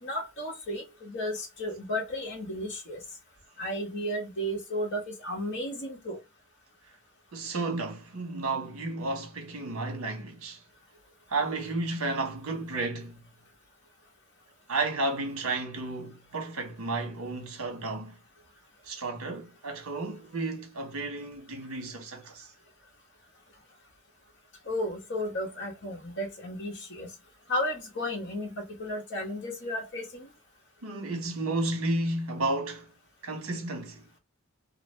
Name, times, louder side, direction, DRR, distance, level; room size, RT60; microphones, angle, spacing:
voice 1, 0.0-3.0 3.6-6.2 24.7-27.1 27.5-30.2, left 1 dB, 55° left, 1.2 m, -33 dB
voice 2, 7.3-10.6 11.3-13.2 14.7-18.2 18.9-22.5 30.8-32.9 33.2-34.0, right 2 dB, 70° right, 1.0 m, -32 dB
2.6 x 2.5 x 3.1 m
head